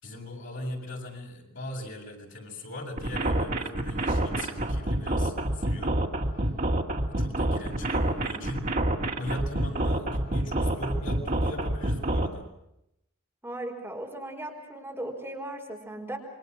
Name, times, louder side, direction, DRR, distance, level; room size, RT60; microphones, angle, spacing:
voice 1, 0.0-6.0 7.1-8.7 9.1-12.5, left 1 dB, 60° left, 0 dB, 6.3 m, -39 dB
sound 1, 3.0-12.3, right 1 dB, 40° right, 2.3 m, -27 dB
voice 2, 13.4-16.2, right 1 dB, 10° right, -1 dB, 5.1 m, -37 dB
28.5 x 23.5 x 6.2 m, 0.82 s
head